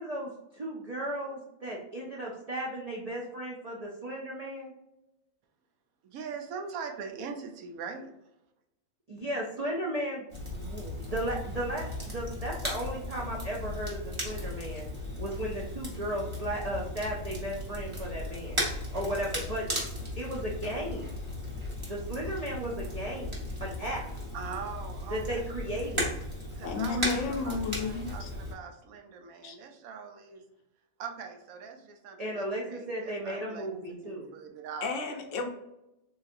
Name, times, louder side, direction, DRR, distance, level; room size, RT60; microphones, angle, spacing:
voice 1, 0.0-4.7 9.1-14.9 15.2-18.6 18.9-19.6 20.1-21.1 21.9-23.3 23.6-24.0 25.1-26.1 32.2-34.3, right 1 dB, 60° right, -3 dB, 0.4 m, -35 dB
voice 2, 6.0-8.1 22.2-22.3 24.3-25.5 26.6-30.5 31.0-33.7 34.0-35.1, right 6 dB, 80° right, 5 dB, 1.0 m, -42 dB
Crackle, 10.3-28.5, left 1 dB, 25° right, 1.0 m, -36 dB
voice 3, 26.6-28.3 29.4-29.6 34.8-35.5, left 4 dB, 65° left, 3 dB, 0.9 m, -32 dB
3.9 x 2.7 x 2.5 m, 0.88 s
omnidirectional pair, 1.5 m